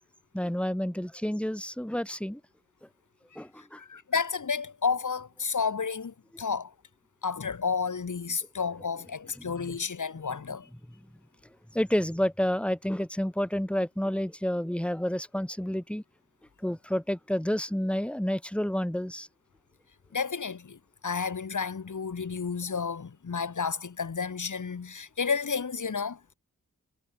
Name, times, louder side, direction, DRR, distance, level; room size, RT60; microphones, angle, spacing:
voice 1, 0.3-2.4 3.4-3.8 9.4-9.8 11.7-16.0 16.6-19.3, equal, 5° left, 7.1 m, -30 dB
voice 2, 3.8-6.7 7.2-10.7 20.1-26.3, left 5 dB, 60° left, 7.0 m, -31 dB
wide cardioid pair, 125°, 34 cm